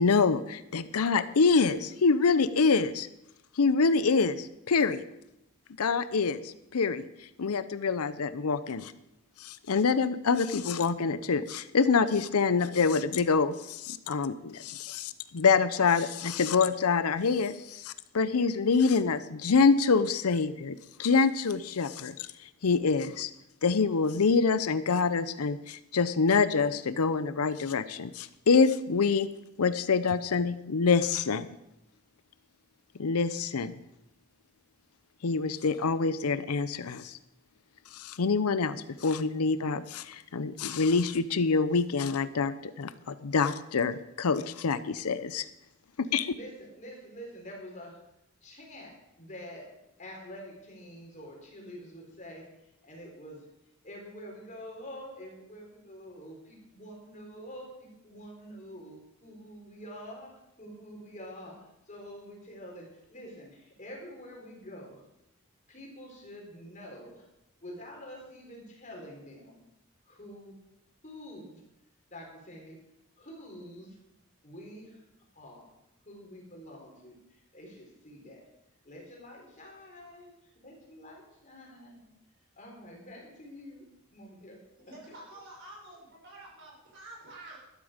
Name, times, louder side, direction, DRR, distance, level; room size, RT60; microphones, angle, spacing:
voice 1, 0.0-3.1 3.6-5.0 5.8-7.1 7.4-8.9 9.4-22.3 22.6-23.3 23.6-29.3 29.6-31.5 33.0-33.7 35.2-37.2 37.9-45.4 46.0-46.3, left 4 dB, 85° left, 14 dB, 0.6 m, -26 dB
voice 2, 46.3-48.0 48.4-48.9 49.2-49.6 50.0-52.4 52.8-53.4 53.8-60.3 60.6-61.5 61.9-62.8 63.1-64.9 65.7-67.2 67.6-69.6 70.1-70.5 71.0-71.6 72.1-72.8 73.2-73.9 74.4-75.0 75.4-75.6 76.1-77.1 77.5-78.4 78.8-80.3 80.6-82.1 82.6-83.8 84.1-84.6 84.9-85.0, equal, 35° left, -1 dB, 3.9 m, -46 dB
voice 3, 84.9-87.6, right 2 dB, 55° right, -2 dB, 5.4 m, -48 dB
12.5 x 12.0 x 5.1 m, 0.86 s
head